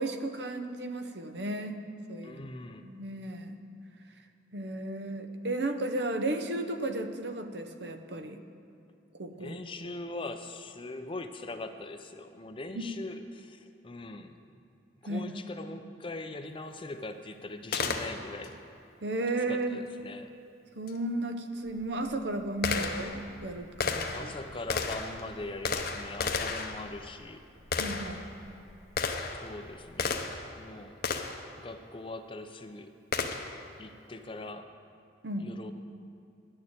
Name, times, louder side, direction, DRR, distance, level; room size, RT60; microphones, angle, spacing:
voice 1, 0.0-1.8 2.1-2.4 2.8-3.6 4.5-8.4 9.1-9.6 12.8-12.9 15.1-15.3 19.0-19.8 20.7-24.4 27.8-28.2 35.2-35.5, right 2 dB, 60° right, 7 dB, 0.7 m, -34 dB
voice 2, 2.2-2.9 9.4-14.3 15.0-18.6 19.5-20.3 24.1-27.4 29.4-30.3 30.6-31.0 31.6-32.9 33.8-34.7 35.4-35.7, left 2 dB, 25° left, 8 dB, 0.5 m, -41 dB
Gunshot gunfire, 17.7-18.5 20.9-21.0 21.7-30.5 31.0-31.5 33.1-33.6, left 4 dB, 55° left, 0.8 m, -34 dB
10.5 x 6.7 x 8.7 m, 2.7 s
head